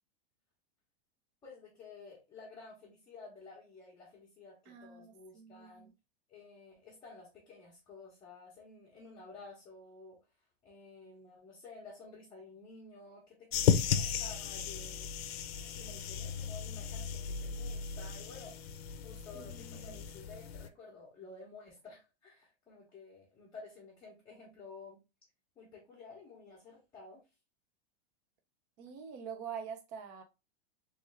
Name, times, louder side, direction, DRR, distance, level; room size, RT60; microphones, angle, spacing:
voice 1, 1.4-5.9 6.3-10.2 10.6-15.3 15.7-18.6 19.0-25.0 25.6-27.2, left 4 dB, 15° left, 0.8 m, -52 dB
voice 2, 4.7-5.9 19.3-20.0 28.8-30.2, right 7 dB, 20° right, 0.3 m, -46 dB
sound 1, 13.5-20.7, left 8 dB, 75° left, 0.6 m, -35 dB
3.2 x 3.2 x 3.2 m
supercardioid pair, 165°, 31 cm